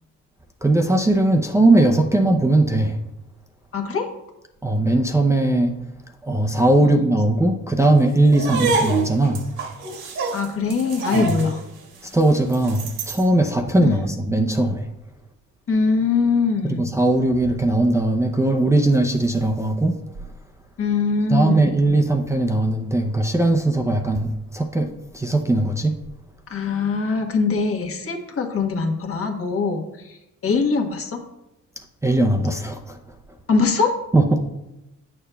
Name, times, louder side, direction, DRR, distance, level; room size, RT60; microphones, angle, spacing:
voice 1, 0.6-3.0 4.6-5.7 6.2-9.4 11.1-11.4 12.0-14.8 16.6-20.0 21.3-26.0 32.0-33.0 34.1-34.4, right 2 dB, 10° right, 2 dB, 0.5 m, -19 dB
voice 2, 3.7-4.1 6.8-7.0 10.3-11.6 13.8-14.0 15.7-16.8 20.8-21.8 26.5-31.2 33.5-33.9, left 4 dB, 50° left, 4 dB, 1.2 m, -22 dB
sound 1, 8.3-13.3, right 4 dB, 75° right, 1.6 m, -27 dB
9.7 x 6.6 x 2.2 m, 0.94 s
cardioid pair, 90°, 30 cm